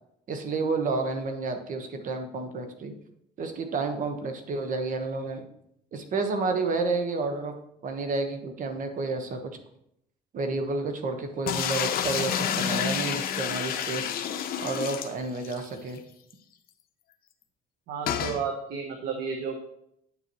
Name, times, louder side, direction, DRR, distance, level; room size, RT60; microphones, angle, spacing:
voice 1, 0.3-2.9 3.4-5.5 5.9-7.6 7.8-9.6 10.3-14.1 14.6-16.0, right 3 dB, 50° right, 6 dB, 1.2 m, -30 dB
sound 1, 11.5-15.6 16.0-16.1 16.3-16.4 18.1-18.4, left 8 dB, 60° left, 0.8 m, -29 dB
voice 2, 17.9-19.6, right 5 dB, 80° right, 3 dB, 1.0 m, -32 dB
8.9 x 6.9 x 3.1 m, 0.76 s
cardioid pair, 110°, 17 cm